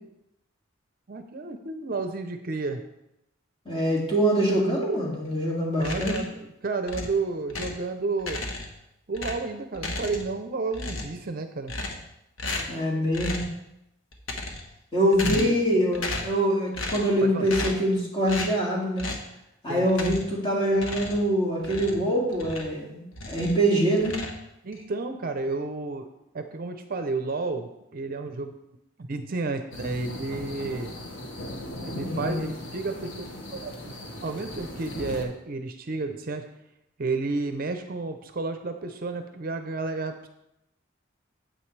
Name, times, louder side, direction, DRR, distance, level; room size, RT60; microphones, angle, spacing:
voice 1, 1.1-2.8 5.8-8.4 9.1-11.7 15.2-15.6 17.2-17.5 19.7-19.9 24.6-26.1 26.3-28.6 29.0-30.9 31.9-36.4 37.0-40.3, right 3 dB, 45° right, 7 dB, 0.6 m, -31 dB
voice 2, 3.7-6.2 12.7-13.5 14.9-19.1 19.6-24.2 32.0-32.4, right 1 dB, 25° left, -4 dB, 2.3 m, -24 dB
sound 1, 5.8-6.4 6.9-7.9 8.2-8.8 9.1-10.4 10.7-11.2 11.7-12.1 12.4-12.8 13.1-13.6 14.1-14.8 15.1-15.7 15.9-16.4 16.7-17.1 17.5-17.9 18.3-18.6 19.0-19.3 19.9-20.4 20.7-22.8 23.1-23.6 24.0-24.8, left 2 dB, 80° left, 1.2 m, -34 dB
sound 2, 29.7-35.2, left 1 dB, 65° left, 1.6 m, -38 dB
9.1 x 7.9 x 3.3 m, 0.86 s
head